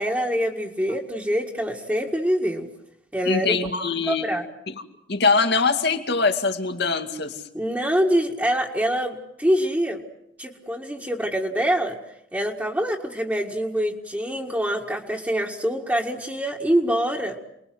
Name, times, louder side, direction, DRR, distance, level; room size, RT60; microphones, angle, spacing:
voice 1, 0.0-2.7 3.1-3.6 4.0-4.4 7.5-10.0 10.4-12.0 12.3-17.4, equal, 10° right, -2 dB, 1.9 m, -25 dB
voice 2, 3.3-4.3 4.7-4.8 5.1-7.4, left 4 dB, 65° left, 7 dB, 2.4 m, -23 dB
29.0 x 21.0 x 7.8 m, 0.79 s
head